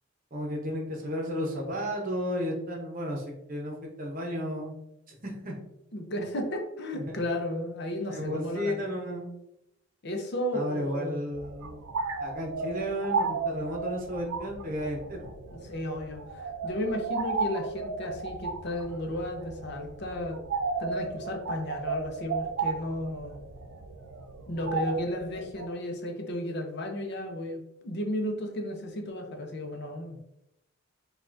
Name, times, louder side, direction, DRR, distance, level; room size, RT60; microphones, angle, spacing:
voice 1, 0.3-4.7 5.1-5.6 6.9-7.2 8.1-9.3 10.5-11.8 12.2-15.3, equal, 40° right, 0 dB, 0.9 m, -33 dB
voice 2, 5.9-8.8 10.0-11.2 15.6-20.4 20.8-23.4 24.5-30.2, left 1 dB, 55° left, 3 dB, 0.6 m, -34 dB
sound 1, 11.3-25.7, right 4 dB, 80° right, 0.4 m, -34 dB
5.3 x 2.4 x 2.6 m, 0.83 s
head